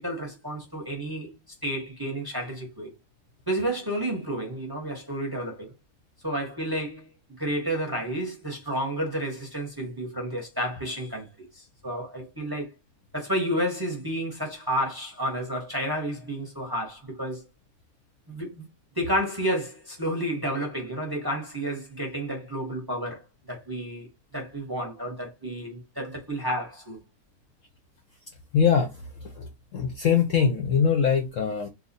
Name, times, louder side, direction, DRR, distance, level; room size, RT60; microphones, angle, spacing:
voice 1, 0.0-1.3 1.6-2.9 3.5-5.7 6.2-7.1 7.4-12.7 13.1-17.4 18.3-18.7 18.9-23.2 23.5-24.1 24.3-27.0, right 1 dB, 15° right, 0.8 m, -31 dB
voice 2, 28.5-28.9 29.4-29.5 29.7-31.7, left 7 dB, 65° left, 0.8 m, -22 dB
2.9 x 2.3 x 3.9 m
omnidirectional pair, 1.8 m